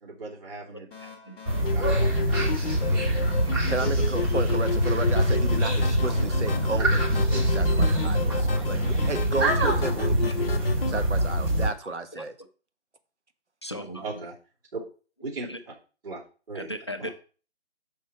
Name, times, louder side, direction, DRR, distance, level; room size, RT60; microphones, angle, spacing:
voice 1, 0.0-0.9 1.7-3.3 3.8-3.9 14.0-14.4 14.7-14.8 15.2-15.5 16.0-16.2 16.5-16.7 17.0-17.1, right 3 dB, 55° right, -6 dB, 2.9 m, -38 dB
sound 1, 0.9-9.2, left 5 dB, ahead, 0.9 m, -46 dB
voice 2, 1.0-1.4 2.9-3.5 5.6-5.7 6.0-6.1 6.5-6.6 6.9-7.5 7.8-8.7 9.9-10.0 10.3-10.6 11.8-12.2 13.6-14.2 15.5-15.6 16.5-17.1, equal, 25° left, 6 dB, 0.5 m, -41 dB
sound 2, 1.5-11.7, equal, 20° right, 1.6 m, -24 dB
sound 3, 1.6-11.0, left 5 dB, 55° left, 0.8 m, -33 dB
voice 3, 3.7-10.6 10.9-12.3, right 3 dB, 75° right, 8 dB, 1.3 m, -33 dB
6.7 x 5.4 x 4.4 m, 0.38 s
figure-of-eight pair, 155°, 35 cm